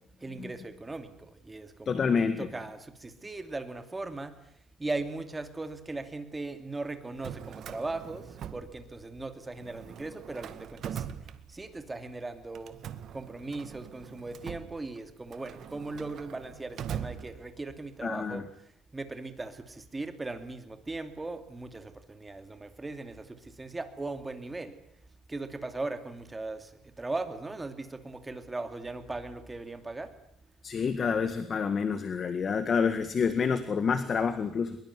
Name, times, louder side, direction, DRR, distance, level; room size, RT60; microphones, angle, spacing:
voice 1, 0.2-4.3 4.8-8.2 8.5-11.0 11.5-12.7 13.1-18.4 18.9-23.3 23.6-24.7 25.3-26.7 27.0-30.1, right 2 dB, 15° right, 9 dB, 2.6 m, -38 dB
voice 2, 1.9-2.5 18.0-18.4 30.6-34.8, left 6 dB, 35° left, 11 dB, 1.8 m, -28 dB
Drawer open or close, 7.0-9.2 9.5-11.9 12.5-17.8, right 9 dB, 55° right, 1.8 m, -42 dB
23.0 x 22.5 x 9.6 m, 0.74 s
cardioid pair, 130°, 0 cm